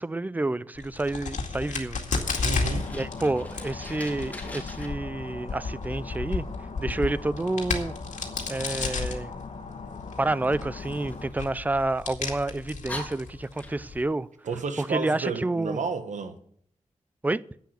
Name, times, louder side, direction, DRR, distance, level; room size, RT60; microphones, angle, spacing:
voice 1, 0.0-2.0 2.9-6.4 6.8-7.9 8.5-9.3 10.2-14.3 14.8-15.8 17.2-17.4, right 2 dB, 15° right, 0.4 m, -29 dB
Crack, 0.8-14.0, left 4 dB, 85° left, 2.2 m, -34 dB
Fire, 1.9-4.9 10.8-12.0 12.5-12.6 12.9-14.1, left 1 dB, 10° left, 2.7 m, -43 dB
sound 1, 2.2-11.3, left 4 dB, 65° left, 2.0 m, -41 dB
voice 2, 2.4-2.9 14.4-16.4, right 5 dB, 80° right, 1.4 m, -31 dB
10.5 x 8.3 x 8.0 m
wide cardioid pair, 135°, 12 cm